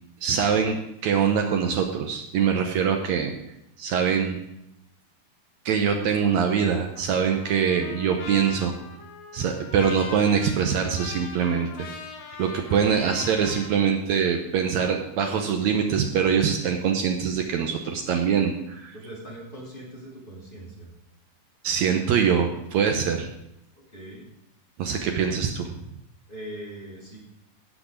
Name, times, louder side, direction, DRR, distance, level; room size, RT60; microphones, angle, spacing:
voice 1, 0.2-3.3 3.8-4.4 5.6-8.7 9.3-11.9 12.4-18.9 21.6-23.3 24.8-25.7, right 7 dB, 85° right, 3 dB, 1.6 m, -23 dB
Trumpet, 6.9-13.7, left 4 dB, 65° left, 3.3 m, -41 dB
voice 2, 12.7-13.1 18.9-20.9 23.9-24.3 26.3-27.2, right 1 dB, 15° left, -5 dB, 2.6 m, -40 dB
17.0 x 6.2 x 5.1 m, 0.82 s
omnidirectional pair, 4.4 m